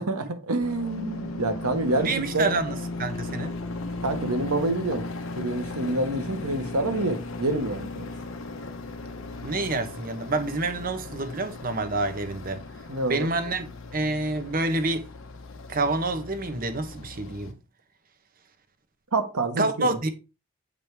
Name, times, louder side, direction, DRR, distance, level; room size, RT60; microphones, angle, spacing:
voice 1, 0.0-2.1 2.3-2.5 4.0-5.0 5.4-8.1 12.9-13.3 19.1-19.9, right 2 dB, 85° right, 1.5 m, -27 dB
sound 1, 0.6-17.5, left 2 dB, 65° left, 1.0 m, -37 dB
voice 2, 2.0-3.5 9.4-12.6 13.1-15.1 15.7-17.6 19.6-20.1, right 2 dB, 40° right, 1.0 m, -28 dB
8.9 x 5.1 x 3.5 m
head